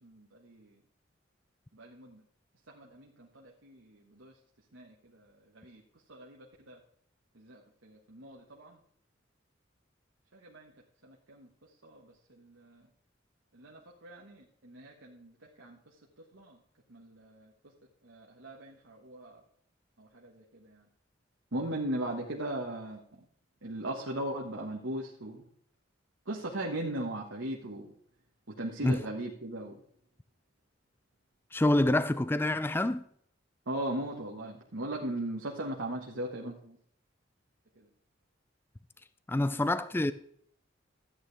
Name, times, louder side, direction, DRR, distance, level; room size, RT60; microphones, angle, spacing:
voice 1, 0.0-0.7 1.7-2.2 2.7-4.3 4.7-5.3 5.5-5.8 6.1-6.8 7.3-8.8 10.4-10.7 11.0-11.5 11.8-12.8 13.5-15.8 16.3-16.6 16.9-17.5 18.0-19.4 20.0-20.8 21.5-23.0 23.6-25.4 26.3-27.9 28.6-29.8 33.7-36.8, right 1 dB, 80° right, 1.4 m, -38 dB
voice 2, 31.5-33.1 39.3-40.1, left 1 dB, 10° left, 0.3 m, -27 dB
14.0 x 8.9 x 3.4 m
head